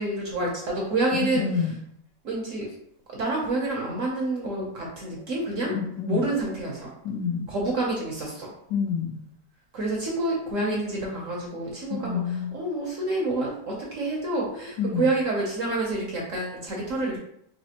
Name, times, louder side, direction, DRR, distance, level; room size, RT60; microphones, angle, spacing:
voice 1, 0.0-1.5 2.2-2.6 3.1-5.8 6.1-6.9 7.5-8.5 9.7-17.2, right 2 dB, 60° right, -2 dB, 0.9 m, -28 dB
voice 2, 1.1-1.8 5.7-6.3 7.0-7.5 8.7-9.2 11.9-12.5 14.8-15.1, left 6 dB, 80° left, 4 dB, 1.2 m, -28 dB
4.1 x 3.1 x 2.8 m, 0.73 s
omnidirectional pair, 2.0 m